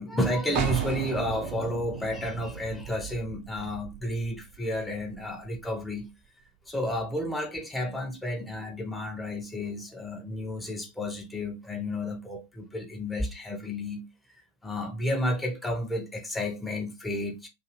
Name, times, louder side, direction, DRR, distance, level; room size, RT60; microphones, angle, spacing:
voice 1, 0.0-6.1 6.7-14.1 14.6-17.5, left 1 dB, 5° left, 0.7 m, -31 dB
sound 1, 0.6-6.1, right 9 dB, 45° right, 0.4 m, -36 dB
2.6 x 2.5 x 3.0 m
figure-of-eight pair, 90°, 0 cm